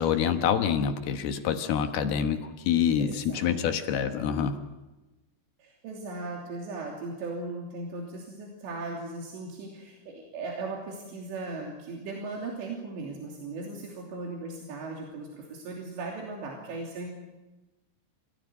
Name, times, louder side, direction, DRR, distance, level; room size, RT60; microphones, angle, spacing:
voice 1, 0.0-4.6, left 8 dB, 70° left, 7 dB, 3.0 m, -26 dB
voice 2, 3.0-3.5 5.6-17.1, right 3 dB, 85° right, -1 dB, 5.3 m, -38 dB
28.0 x 16.5 x 9.6 m, 1.1 s
omnidirectional pair, 4.9 m